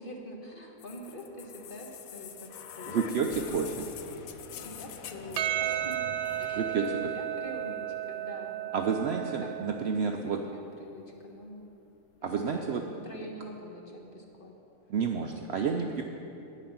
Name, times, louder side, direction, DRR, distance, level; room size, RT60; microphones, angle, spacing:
voice 1, 0.0-2.5 2.7-3.6 4.4-6.0 6.4-8.6 9.2-9.5 9.8-10.0 10.3-11.6 12.2-14.5 15.6-15.9, equal, 40° left, 0 dB, 1.3 m, -44 dB
sound 1, 0.8-8.7 9.7-9.8, left 8 dB, 75° left, 1.0 m, -46 dB
voice 2, 2.9-3.7 6.5-6.8 8.7-10.4 12.2-12.8 14.9-16.0, right 6 dB, 65° right, 3 dB, 0.7 m, -30 dB
Percussion, 5.4-10.0, right 12 dB, 80° right, 1.1 m, -34 dB
9.3 x 8.9 x 5.9 m, 2.9 s
omnidirectional pair, 1.5 m